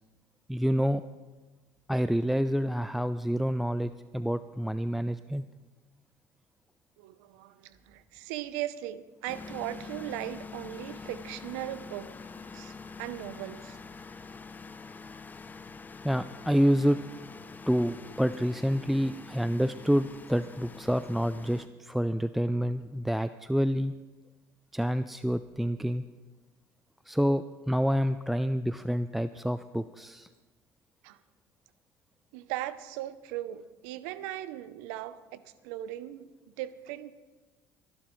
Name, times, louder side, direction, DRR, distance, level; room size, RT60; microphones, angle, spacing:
voice 1, 0.5-1.0 1.9-5.4 16.0-17.0 17.7-23.9 24.7-26.0 27.1-30.3, equal, ahead, 12 dB, 0.3 m, -28 dB
voice 2, 7.0-12.1 12.5-13.8 31.0-31.2 32.3-37.1, right 13 dB, 85° right, 14 dB, 0.7 m, -38 dB
sound 1, 9.3-21.7, left 4 dB, 20° left, 0.7 m, -45 dB
24.0 x 11.5 x 3.2 m, 1.3 s
supercardioid pair, 90°, 8 cm